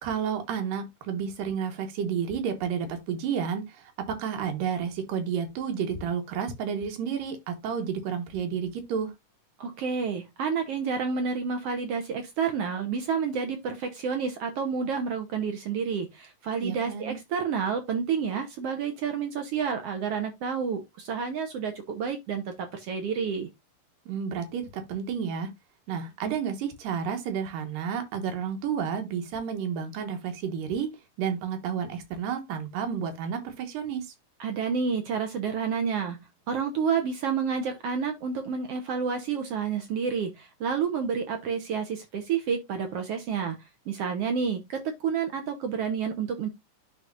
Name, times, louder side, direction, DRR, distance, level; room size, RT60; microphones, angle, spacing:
voice 1, 0.0-9.1 16.6-17.2 24.1-25.5 25.9-30.9 31.2-34.1, right 7 dB, 85° right, 2.9 m, -31 dB
voice 2, 9.6-23.5 34.4-46.5, right 6 dB, 70° right, 1.5 m, -29 dB
11.0 x 4.1 x 2.5 m
omnidirectional pair, 3.8 m